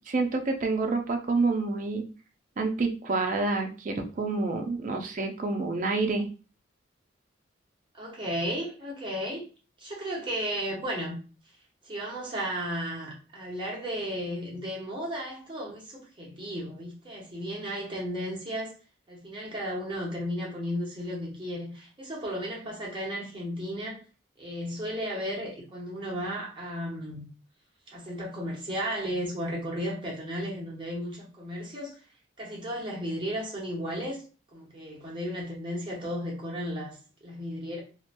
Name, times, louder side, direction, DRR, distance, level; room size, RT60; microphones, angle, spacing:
voice 1, 0.1-2.0 2.6-6.3, right 3 dB, 40° right, 0.4 m, -28 dB
voice 2, 7.9-9.4 9.8-11.2 11.8-18.7 19.1-24.0 24.4-27.3 27.9-31.9 32.4-34.2 34.5-37.8, equal, 25° right, 0.9 m, -34 dB
2.8 x 2.2 x 2.5 m
head